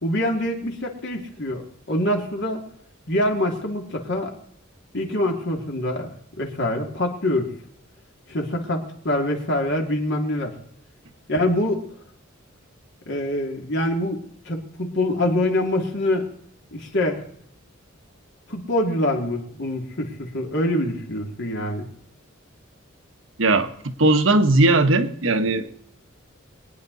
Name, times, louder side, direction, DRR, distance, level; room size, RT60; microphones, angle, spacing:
voice 1, 0.0-2.6 3.1-4.3 4.9-7.5 8.3-10.5 11.3-11.9 13.1-16.3 16.7-17.2 18.5-21.9, left 1 dB, 60° left, 2 dB, 2.8 m, -25 dB
voice 2, 23.4-23.7 24.0-25.7, right 2 dB, 70° right, 9 dB, 1.3 m, -18 dB
23.0 x 9.7 x 4.1 m, 0.67 s
head